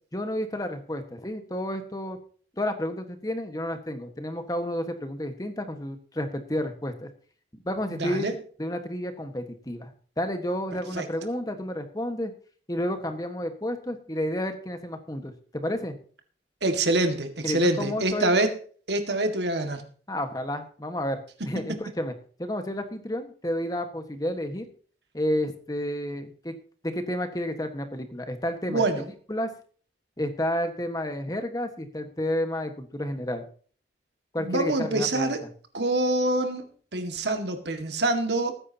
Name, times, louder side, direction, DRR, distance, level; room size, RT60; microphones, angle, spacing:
voice 1, 0.1-2.2 2.6-7.1 7.5-8.3 8.6-9.9 10.2-12.3 12.7-16.0 17.4-18.4 20.1-22.1 22.4-24.7 25.1-26.6 26.8-29.0 29.3-29.5 30.2-33.4 34.3-35.3, left 1 dB, 20° left, 7 dB, 1.4 m, -31 dB
voice 2, 7.9-8.3 10.9-11.1 16.6-18.5 18.9-19.8 21.7-21.8 28.7-29.0 34.4-35.4 35.7-36.7 36.9-38.5, right 2 dB, 75° right, 6 dB, 2.0 m, -25 dB
20.0 x 9.8 x 2.9 m, 0.43 s
head